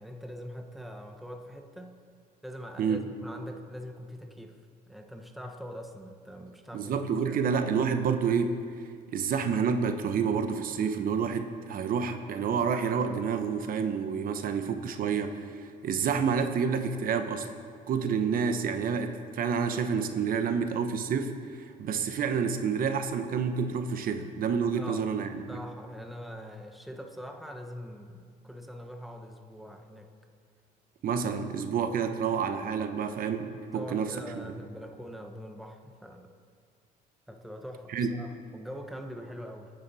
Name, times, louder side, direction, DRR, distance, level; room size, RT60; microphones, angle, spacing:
voice 1, 0.0-2.0 2.4-4.6 4.9-7.4 24.7-30.1 33.7-36.3 37.3-39.7, equal, ahead, 4 dB, 1.1 m, -43 dB
voice 2, 6.7-8.6 9.1-17.5 17.9-25.6 31.0-34.5 37.9-38.1, right 6 dB, 60° right, 7 dB, 1.0 m, -29 dB
23.5 x 9.8 x 4.2 m, 2.2 s
cardioid pair, 110°, 17 cm